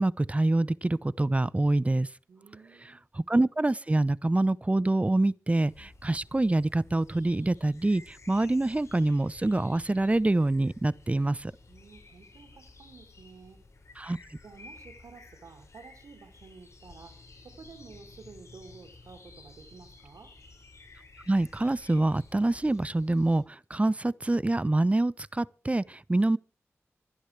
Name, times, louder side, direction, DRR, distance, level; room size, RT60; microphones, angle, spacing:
voice 1, 0.0-2.1 3.3-11.5 14.0-14.2 21.3-26.4, right 2 dB, 25° right, 0.7 m, -26 dB
voice 2, 2.3-3.0 11.7-13.6 14.4-20.3, right 4 dB, 85° right, 3.5 m, -51 dB
sound 1, 5.7-23.4, left 3 dB, 65° left, 6.8 m, -53 dB
25.5 x 10.0 x 3.4 m
cardioid pair, 45°, 5 cm